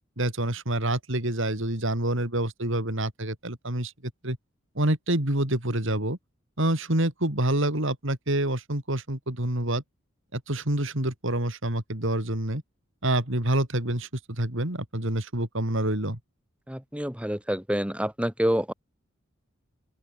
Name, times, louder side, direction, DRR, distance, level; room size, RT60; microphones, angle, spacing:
voice 1, 0.2-3.9 4.2-4.4 4.8-6.2 6.6-9.8 10.3-12.6 13.0-14.1 14.4-16.2, right 1 dB, 65° right, 4.2 m, -27 dB
voice 2, 16.7-18.7, equal, 5° right, 2.5 m, -27 dB
open air
head